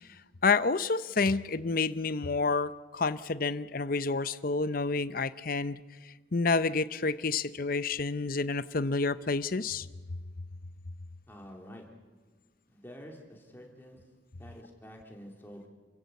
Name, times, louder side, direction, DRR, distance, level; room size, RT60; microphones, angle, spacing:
voice 1, 0.4-5.8 6.3-9.9, left 4 dB, 45° left, 15 dB, 0.7 m, -29 dB
voice 2, 11.3-11.8 12.7-14.0 14.4-15.7, equal, 10° left, 0 dB, 3.2 m, -48 dB
29.0 x 16.0 x 8.3 m, 1.5 s
head